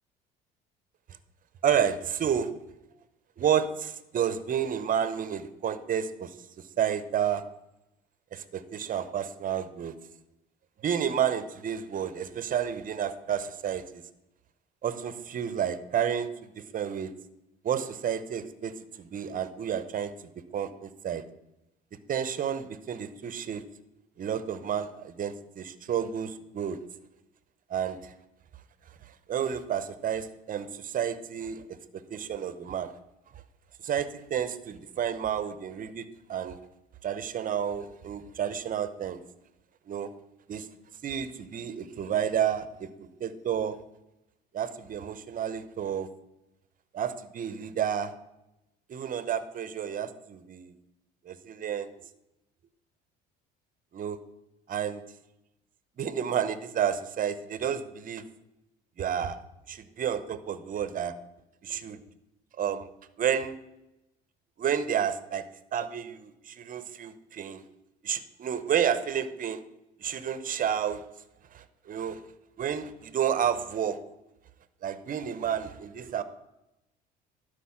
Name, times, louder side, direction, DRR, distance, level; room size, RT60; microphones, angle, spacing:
voice 1, 1.6-2.5 3.4-7.4 8.3-9.9 10.8-14.0 14.8-16.3 16.6-17.1 17.6-20.1 20.5-21.2 22.1-23.6 24.2-26.8 27.7-28.1 29.3-32.9 33.8-36.6 37.0-39.2 39.9-40.1 40.5-40.7 41.0-42.9 43.2-43.8 44.5-46.1 46.9-48.1 48.9-50.7 51.3-51.9 53.9-54.2 54.7-55.0 56.0-58.2 59.0-59.4 59.7-61.2 61.6-62.0 62.6-62.9 63.2-63.5 64.6-65.5 65.7-67.6 68.0-69.6 70.0-71.0 71.5-72.2 72.6-74.0 74.8-76.2, right 8 dB, 45° right, 13 dB, 0.9 m, -30 dB
12.0 x 5.2 x 5.9 m, 0.92 s
supercardioid pair, 80°, 20 cm